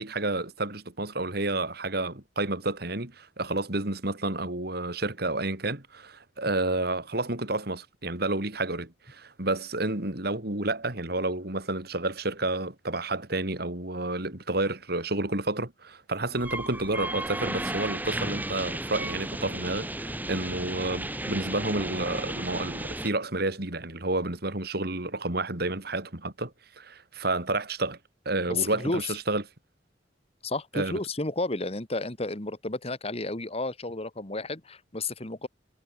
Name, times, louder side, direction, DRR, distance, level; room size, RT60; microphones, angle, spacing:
voice 1, 0.0-28.0 28.2-29.4 30.7-31.0, right 2 dB, 60° right, 3.4 m, -30 dB
sound 1, 16.4-23.1, right 1 dB, 10° right, 2.7 m, -34 dB
voice 2, 28.5-29.2 30.4-35.5, left 2 dB, 35° left, 2.0 m, -32 dB
head